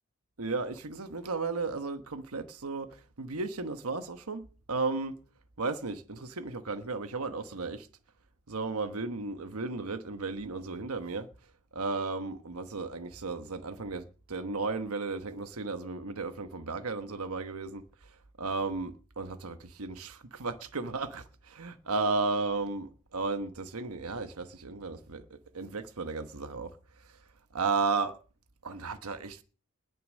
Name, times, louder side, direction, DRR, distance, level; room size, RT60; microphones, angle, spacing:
voice 1, 0.4-2.9 3.2-5.1 5.6-7.9 8.5-11.3 11.7-17.8 18.4-25.2 25.5-26.7 27.5-28.1 28.6-29.4, right 3 dB, 85° right, 1.1 m, -34 dB
20.5 x 6.9 x 6.4 m
head